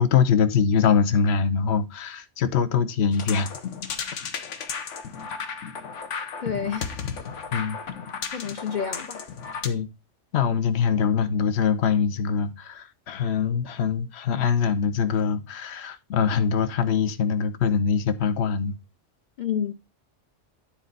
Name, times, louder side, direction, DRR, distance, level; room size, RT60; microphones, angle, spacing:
voice 1, 0.0-3.5 7.5-7.8 9.6-9.9 10.3-18.8, left 6 dB, 65° left, 1.0 m, -23 dB
sound 1, 3.1-9.7, left 6 dB, 85° left, 1.3 m, -34 dB
voice 2, 6.4-7.0 8.3-9.2 19.4-19.7, left 7 dB, 50° left, 0.7 m, -29 dB
10.0 x 4.4 x 3.9 m
omnidirectional pair, 1.2 m